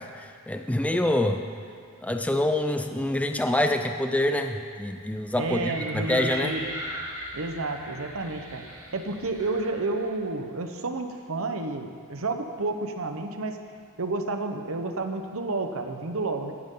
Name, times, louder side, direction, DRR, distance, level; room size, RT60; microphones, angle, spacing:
voice 1, 0.0-1.4 2.0-6.5, left 1 dB, 5° left, 5 dB, 0.5 m, -26 dB
sound 1, 5.4-10.2, right 1 dB, 15° right, 2.9 m, -38 dB
voice 2, 5.4-6.7 7.3-8.6 8.9-13.6 14.0-16.5, right 3 dB, 65° right, 6 dB, 1.0 m, -30 dB
17.5 x 11.0 x 3.9 m, 2.3 s
head